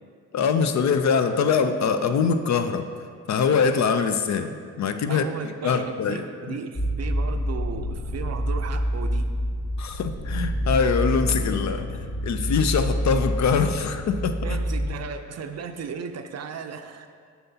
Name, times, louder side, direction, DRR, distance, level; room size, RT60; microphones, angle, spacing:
voice 1, 0.3-2.9 3.3-5.3 5.6-6.2 9.8-11.9 12.2-14.6, left 6 dB, 45° left, 9 dB, 0.5 m, -23 dB
voice 2, 5.1-9.3 11.9-12.0 14.4-17.1, right 6 dB, 45° right, 7 dB, 0.5 m, -35 dB
sound 1, 6.7-14.9, equal, 20° left, 0.9 m, -27 dB
7.6 x 5.7 x 2.8 m, 2.1 s
supercardioid pair, 55°, 38 cm